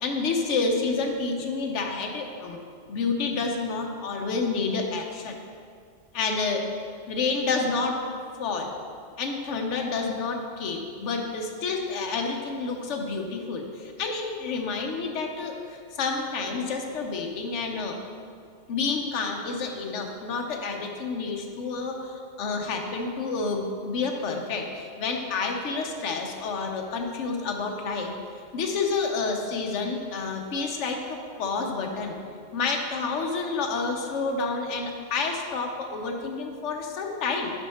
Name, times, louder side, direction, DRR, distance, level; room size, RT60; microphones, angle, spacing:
voice 1, 0.0-2.6 2.9-5.4 6.1-6.7 7.1-8.0 8.4-8.7 9.2-18.0 18.7-28.1 28.5-32.1 32.5-37.5, left 4 dB, 70° left, 2 dB, 1.1 m, -29 dB
6.8 x 5.3 x 4.2 m, 2.2 s
omnidirectional pair, 1.3 m